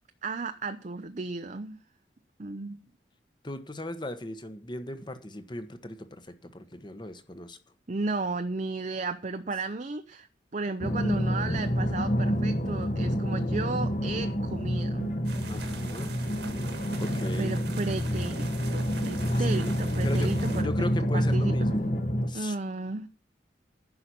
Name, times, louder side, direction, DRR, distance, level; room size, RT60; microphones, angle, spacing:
voice 1, 0.2-1.8 2.4-2.8 7.9-10.3 10.5-15.1 17.4-20.7 21.1-21.5 22.3-23.1, right 3 dB, 40° right, 8 dB, 0.6 m, -34 dB
voice 2, 3.4-7.6 15.5-16.2 17.0-17.6 19.3-19.7 20.0-20.3 20.6-21.9 22.3-22.6, left 1 dB, 25° left, 9 dB, 1.1 m, -38 dB
sound 1, 10.8-22.3, equal, 40° left, 1.3 m, -28 dB
sound 2, 15.2-20.6, right 4 dB, 65° right, 1.7 m, -43 dB
11.0 x 5.8 x 8.2 m, 0.39 s
head